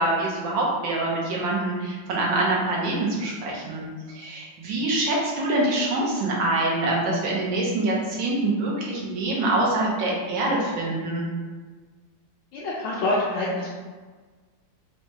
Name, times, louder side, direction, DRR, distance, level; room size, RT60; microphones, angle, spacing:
voice 1, 0.0-11.2, right 2 dB, 80° right, -4 dB, 1.6 m, -25 dB
voice 2, 12.5-13.7, left 2 dB, 75° left, -7 dB, 1.2 m, -26 dB
4.6 x 2.2 x 2.8 m, 1.4 s
omnidirectional pair, 2.0 m